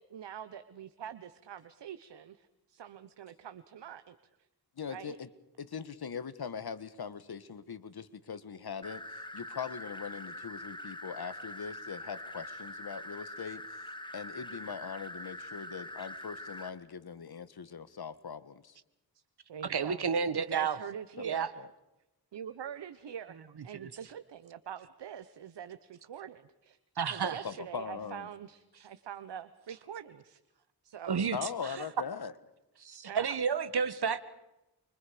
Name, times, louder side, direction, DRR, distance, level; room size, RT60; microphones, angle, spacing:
voice 1, 0.0-4.5 4.9-5.2 19.5-20.0 20.3-21.5 22.3-23.4 23.6-26.8 27.1-30.4 30.8-31.2 31.7-31.9 33.1-33.3, right 9 dB, 85° right, 11 dB, 1.1 m, -45 dB
voice 2, 4.8-5.3 5.6-13.6 14.1-18.8 21.3-21.7 27.4-28.3 31.3-32.3, left 6 dB, 65° left, 13 dB, 1.6 m, -41 dB
sound 1, 8.8-16.7, left 1 dB, 10° left, 2.0 m, -44 dB
voice 3, 19.6-20.8 21.2-21.5 23.7-23.9 27.0-27.4 31.0-31.8 32.8-34.2, right 6 dB, 65° right, 13 dB, 1.7 m, -31 dB
29.5 x 24.0 x 5.2 m, 0.94 s
cardioid pair, 70°, 41 cm